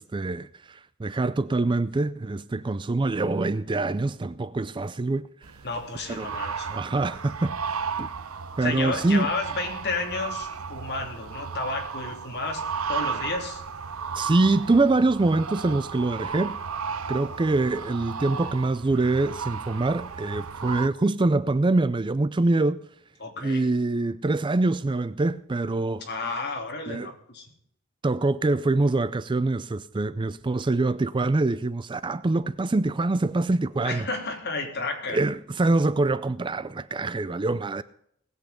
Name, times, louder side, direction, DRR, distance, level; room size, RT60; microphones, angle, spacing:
voice 1, 0.0-5.3 6.1-6.3 6.7-8.1 8.6-9.3 14.1-16.6 17.1-22.8 23.4-26.1 26.9-27.1 28.0-34.1 35.1-37.8, right 2 dB, 25° right, 0.4 m, -25 dB
sound 1, 5.4-20.9, right 6 dB, 85° right, 0.9 m, -34 dB
voice 2, 5.6-6.7 8.6-13.6 23.2-23.6 26.1-27.5 33.8-35.2, left 3 dB, 50° left, 3.2 m, -32 dB
19.5 x 8.3 x 5.1 m
head